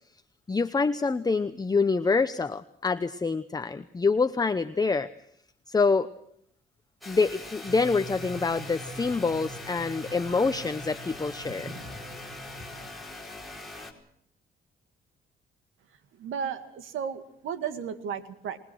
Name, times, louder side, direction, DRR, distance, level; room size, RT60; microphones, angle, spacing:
voice 1, 0.5-5.1 5.7-6.1 7.1-11.7, left 4 dB, 20° left, 11 dB, 0.8 m, -26 dB
sound 1, 7.0-13.9, left 2 dB, ahead, 4.6 m, -42 dB
sound 2, 7.7-12.9, right 2 dB, 45° right, 5.1 m, -44 dB
voice 2, 16.2-18.6, right 7 dB, 85° right, 10 dB, 2.2 m, -34 dB
28.0 x 19.5 x 6.3 m, 0.70 s
cardioid pair, 90°, 20 cm